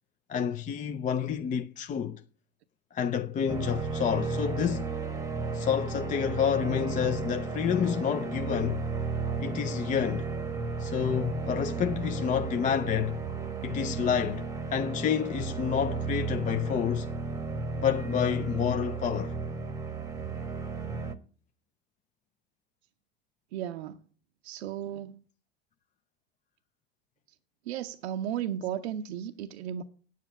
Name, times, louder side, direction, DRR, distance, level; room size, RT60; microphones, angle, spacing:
voice 1, 0.3-2.2 2.9-4.9 5.5-8.8 9.4-10.3 10.8-13.2 13.6-17.1 17.7-19.4, left 8 dB, 25° left, 0.5 m, -29 dB
sound 1, 3.5-21.2, right 3 dB, 10° right, 1.0 m, -34 dB
voice 2, 23.5-24.0 24.4-25.2 27.7-29.8, right 10 dB, 85° right, 0.7 m, -35 dB
9.2 x 7.4 x 6.9 m
hypercardioid pair, 95°, 31 cm